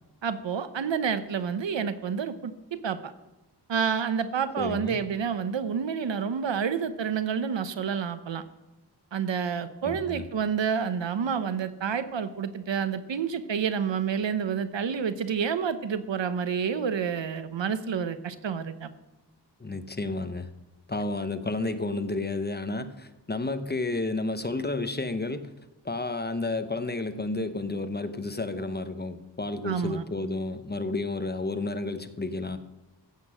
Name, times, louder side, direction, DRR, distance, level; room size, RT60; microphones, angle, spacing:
voice 1, 0.2-3.1 3.7-8.4 9.1-18.9 29.6-30.0, right 7 dB, 85° right, 12 dB, 1.0 m, -29 dB
voice 2, 4.6-5.0 9.8-10.2 19.6-20.5 20.9-25.5 25.8-32.6, left 2 dB, 25° left, 10 dB, 0.9 m, -31 dB
15.0 x 8.4 x 6.2 m, 1.1 s
wide cardioid pair, 120°, 43 cm